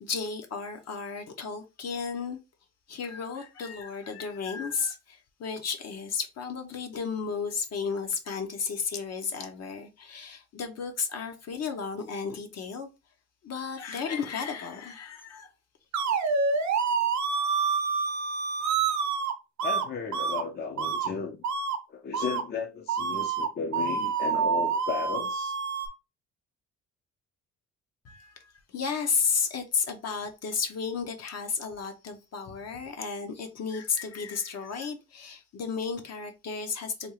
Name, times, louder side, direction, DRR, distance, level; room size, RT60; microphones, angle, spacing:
voice 1, 0.0-2.4 2.9-12.9 13.4-15.5 28.0-28.3 28.7-37.1, left 5 dB, 55° left, 0.9 m, -33 dB
sound 1, 15.9-19.3 19.6-19.8 20.1-20.4 20.8-21.1 21.4-21.8 22.1-22.4 22.9-25.9, right 5 dB, 65° right, 0.8 m, -27 dB
voice 2, 19.6-21.4 21.9-25.6, left 5 dB, 35° left, 0.5 m, -35 dB
3.5 x 2.3 x 3.1 m
cardioid pair, 90°, 30 cm